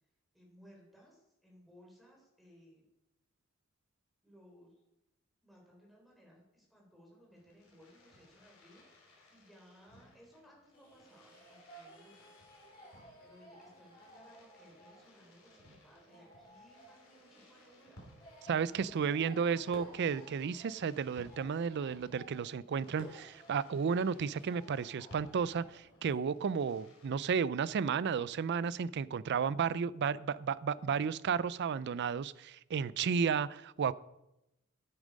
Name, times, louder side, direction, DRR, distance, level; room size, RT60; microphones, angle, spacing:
voice 1, 0.3-2.9 4.2-4.7 5.4-8.8 9.3-12.3 13.2-18.0 18.7-19.9, equal, ahead, 3.8 m, -61 dB
Fireworks, 7.3-27.1, left 1 dB, 75° left, 3.4 m, -59 dB
sound 1, 10.7-26.2, right 1 dB, 25° left, 4.1 m, -58 dB
voice 2, 18.4-33.9, right 6 dB, 55° right, 0.4 m, -33 dB
9.7 x 8.9 x 5.2 m
head